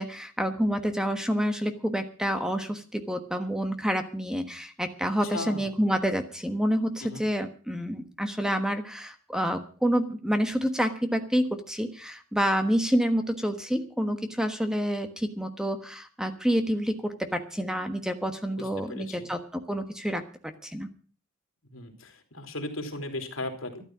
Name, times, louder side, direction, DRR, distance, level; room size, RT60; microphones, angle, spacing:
voice 1, 0.0-20.2 20.6-20.9, equal, 5° right, 8 dB, 1.3 m, -28 dB
voice 2, 5.2-5.8 7.0-7.3 18.6-19.3 21.7-23.8, left 2 dB, 75° left, 4 dB, 3.5 m, -37 dB
13.0 x 12.0 x 6.1 m, 0.39 s
head